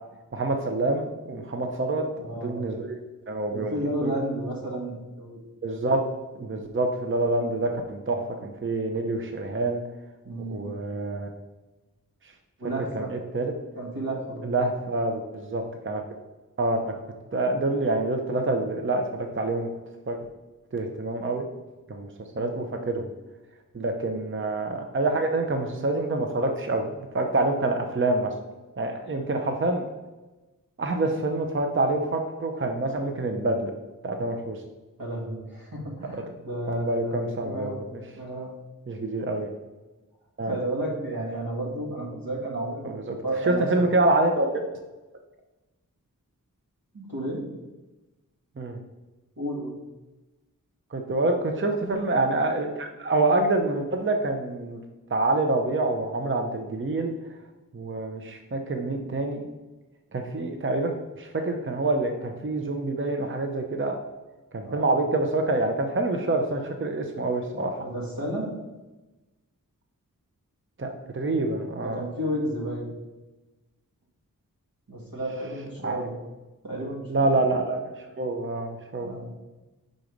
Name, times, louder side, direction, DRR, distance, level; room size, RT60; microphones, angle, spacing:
voice 1, 0.3-2.1 2.3-3.0 3.3-3.7 4.0-4.1 5.6-6.0 6.4-9.8 10.5-11.3 12.9-13.5 14.4-16.0 16.6-16.9 17.3-19.7 20.1-20.2 20.7-21.5 21.9-22.1 22.4-23.1 23.7-26.9 27.1-28.3 28.8-29.8 30.8-33.7 34.0-34.6 36.7-37.8 38.9-39.5 40.4-40.6 42.8-43.0 43.5-44.5 48.6-48.8 50.9-54.8 55.1-57.2 57.7-59.5 60.1-64.0 64.5-67.7 70.8-72.0 75.8-76.0 77.1-79.1, right 2 dB, 35° right, 4 dB, 0.6 m, -26 dB
voice 2, 2.1-2.8 3.5-5.4 10.2-10.7 12.6-13.1 13.7-14.5 22.3-22.6 35.0-37.8 38.1-38.5 40.4-42.9 43.2-43.9 46.9-47.4 49.4-49.7 64.6-65.0 67.8-68.5 71.8-72.9 74.9-76.2 76.6-77.4 79.0-79.3, right 1 dB, 80° right, -3 dB, 1.7 m, -32 dB
4.7 x 3.9 x 5.1 m, 1.1 s
wide cardioid pair, 40°, 34 cm